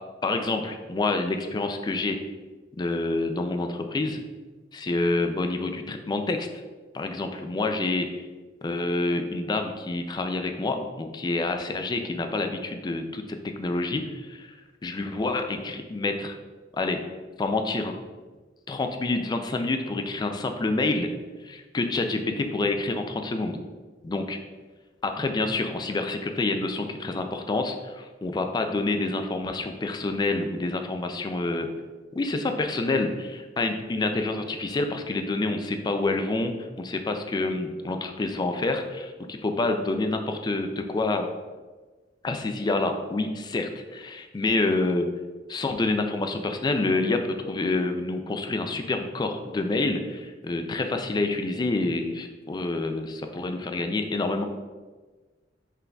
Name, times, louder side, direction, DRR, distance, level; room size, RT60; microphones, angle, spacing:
voice 1, 0.2-2.2 2.8-4.2 4.7-6.5 6.9-8.1 8.6-14.5 14.8-16.4 16.7-17.0 17.4-18.0 18.7-21.1 21.4-23.6 24.0-24.4 25.0-31.7 32.1-41.3 42.2-45.1 45.5-54.4, left 2 dB, 25° left, 6 dB, 0.3 m, -27 dB
5.6 x 3.8 x 2.3 m, 1.3 s
head